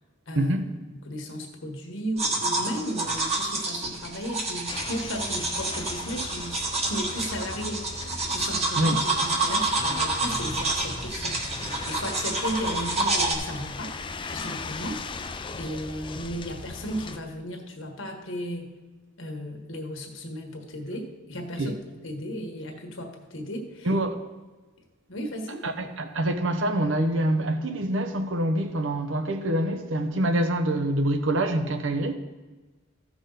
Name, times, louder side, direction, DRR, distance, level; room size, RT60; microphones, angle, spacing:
voice 1, 0.4-0.7 8.8-9.0 21.6-21.7 23.8-24.2 25.6-32.2, right 1 dB, 75° right, 0.9 m, -25 dB
voice 2, 0.9-11.4 11.8-14.0 14.3-15.1 15.6-18.7 19.2-21.8 22.0-23.9 25.1-25.6, equal, 75° left, 1.4 m, -35 dB
sound 1, 2.2-13.3, right 2 dB, 35° right, 1.5 m, -28 dB
sound 2, 4.7-17.2, left 4 dB, 25° left, 0.4 m, -38 dB
15.0 x 6.2 x 3.9 m
head